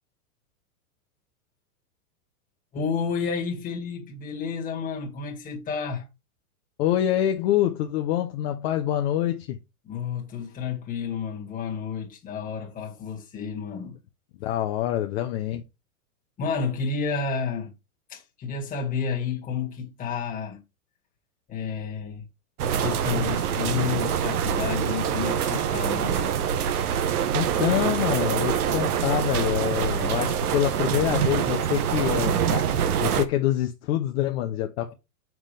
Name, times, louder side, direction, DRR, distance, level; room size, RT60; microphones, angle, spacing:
voice 1, 2.7-6.1 9.8-14.0 16.4-17.7 18.1-20.6 21.5-22.2 22.8-26.3, left 6 dB, 20° left, 2.0 m, -30 dB
voice 2, 6.8-9.6 14.4-15.6 27.1-34.9, left 12 dB, 45° left, 0.9 m, -26 dB
sound 1, 22.6-33.2, right 8 dB, 75° right, 1.2 m, -25 dB
7.2 x 6.1 x 3.3 m
supercardioid pair, 145°, 45 cm